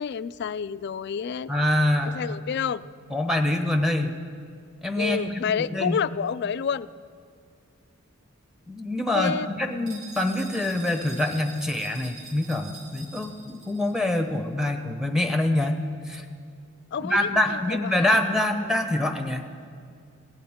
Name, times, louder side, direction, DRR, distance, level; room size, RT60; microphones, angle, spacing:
voice 1, 0.0-1.5 2.0-2.8 5.0-6.9 9.1-9.5 16.9-18.2, left 7 dB, 50° left, 16 dB, 0.3 m, -29 dB
voice 2, 1.5-2.5 3.1-4.2 4.8-6.0 8.7-16.2 17.0-19.4, left 1 dB, 5° right, 5 dB, 1.0 m, -25 dB
sound 1, 9.9-14.0, right 2 dB, 75° right, 2.9 m, -45 dB
22.5 x 17.0 x 3.6 m, 2.3 s
head